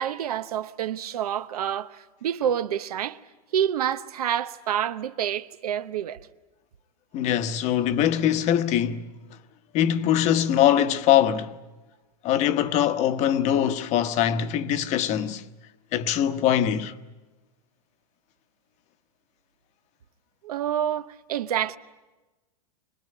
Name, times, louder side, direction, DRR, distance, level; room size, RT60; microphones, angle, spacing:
voice 1, 0.0-3.2 3.5-6.2 20.4-21.8, right 9 dB, 80° right, 0.9 m, -28 dB
voice 2, 7.1-9.1 9.7-11.5 12.2-15.4 15.9-16.9, left 10 dB, 35° left, 1.1 m, -22 dB
25.0 x 19.5 x 9.8 m
hypercardioid pair, 130°, 19 cm